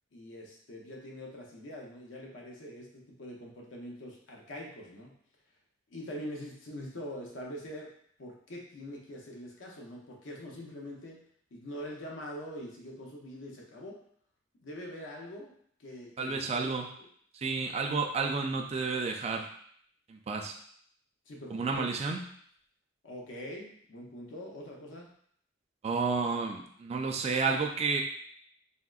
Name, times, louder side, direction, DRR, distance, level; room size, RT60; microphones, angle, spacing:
voice 1, 0.1-5.1 5.9-7.9 8.2-11.2 11.5-14.0 14.6-15.5 15.8-16.7 17.0-17.1 17.7-17.9 21.3-21.8 23.0-25.1, equal, 75° left, -1 dB, 0.7 m, -43 dB
voice 2, 16.2-16.9 17.3-19.5 20.1-20.5 21.5-22.2 25.8-28.0, right 4 dB, 35° right, 3 dB, 0.3 m, -31 dB
3.5 x 2.0 x 2.3 m, 0.63 s
head